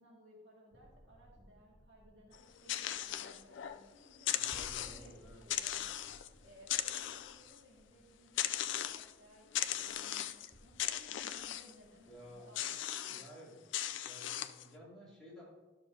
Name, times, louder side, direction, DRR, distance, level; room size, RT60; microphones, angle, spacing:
voice 1, 0.0-13.6, equal, 65° right, -3 dB, 2.0 m, -61 dB
sound 1, 0.7-12.4, equal, 15° right, 0.6 m, -62 dB
sound 2, 2.3-3.8 4.1-5.1 5.5-6.3 6.6-7.6 8.4-9.1 9.5-10.5 10.8-11.7 12.5-13.3 13.7-14.7, left 12 dB, 70° left, 0.3 m, -38 dB
voice 2, 4.2-5.4 12.1-12.5 13.0-13.6 14.0-15.4, equal, 5° left, -9 dB, 2.6 m, -54 dB
12.5 x 6.7 x 2.7 m, 1.2 s
head